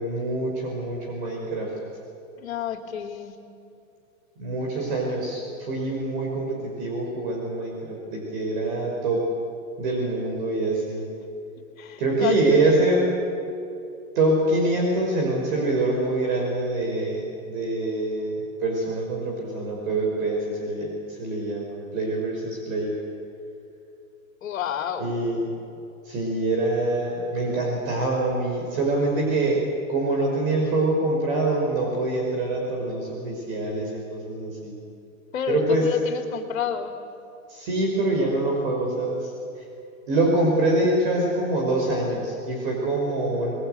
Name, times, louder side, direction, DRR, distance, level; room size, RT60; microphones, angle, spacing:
voice 1, 0.0-1.7 4.4-9.3 9.8-11.1 12.0-13.1 14.2-23.0 25.0-25.5 26.0-29.6 29.9-34.8 35.5-35.9 37.5-39.3 40.1-43.5, right 2 dB, 40° right, 0 dB, 5.4 m, -25 dB
voice 2, 2.4-3.3 11.8-12.7 24.4-25.1 35.3-36.9, left 7 dB, 70° left, 5 dB, 2.9 m, -29 dB
29.5 x 22.0 x 9.2 m, 2.7 s
supercardioid pair, 175°, 41 cm